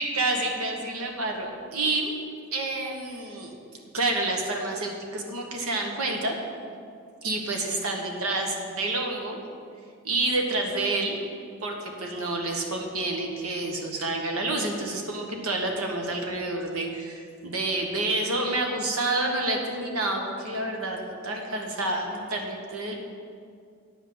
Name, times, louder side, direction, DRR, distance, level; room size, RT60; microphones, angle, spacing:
voice 1, 0.0-2.1 2.5-3.5 3.9-6.4 7.2-9.4 10.0-11.1 11.6-22.9, right 2 dB, 80° right, 1 dB, 1.4 m, -29 dB
9.3 x 6.0 x 7.8 m, 2.3 s
head